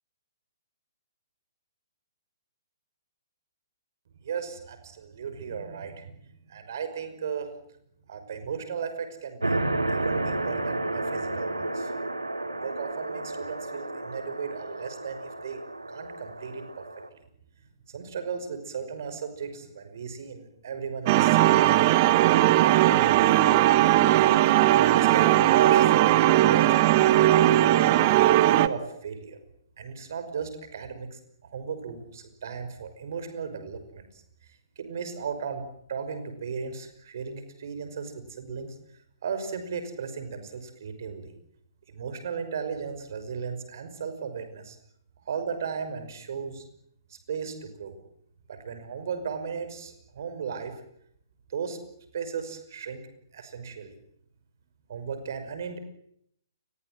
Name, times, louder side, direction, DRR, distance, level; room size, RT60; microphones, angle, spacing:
voice 1, 4.2-7.5 8.1-9.6 9.9-11.9 12.5-15.6 15.9-16.9 17.1-17.2 17.9-24.3 24.6-28.1 28.5-29.4 29.8-34.2 34.8-35.6 35.9-38.8 39.2-41.3 41.9-44.8 45.3-46.6 47.1-48.0 48.5-50.8 51.5-51.8 52.1-53.0 53.3-53.9 54.9-55.8, right 6 dB, 55° right, 10 dB, 5.6 m, -36 dB
sound 1, 9.4-17.1, right 2 dB, 85° right, 2.3 m, -32 dB
sound 2, 21.1-28.7, right 14 dB, 35° right, 1.3 m, -19 dB
29.0 x 22.0 x 7.8 m, 0.72 s
figure-of-eight pair, 125°, 2 cm